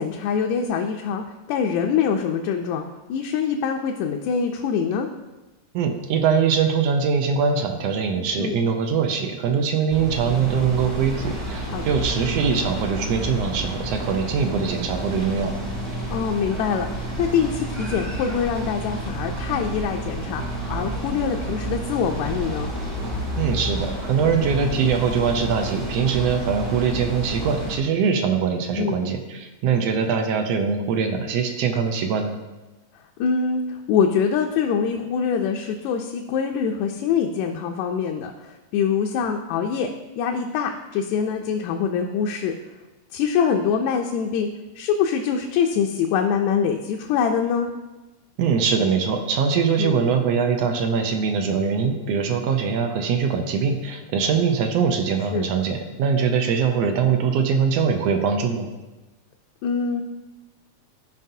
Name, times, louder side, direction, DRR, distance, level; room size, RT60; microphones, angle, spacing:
voice 1, 0.0-2.8 3.1-5.1 8.4-8.6 11.7-12.0 16.1-22.7 28.8-29.1 33.2-39.9 40.2-42.6 43.1-44.5 44.8-47.7 49.8-50.2 55.3-55.5 59.6-60.0, left 6 dB, 80° left, 2 dB, 1.9 m, -24 dB
voice 2, 5.7-15.5 23.4-32.3 48.4-58.7, right 6 dB, 75° right, 5 dB, 1.6 m, -22 dB
sound 1, 9.9-27.8, right 1 dB, 20° right, 0.7 m, -30 dB
13.0 x 5.4 x 2.7 m, 1.1 s
omnidirectional pair, 3.3 m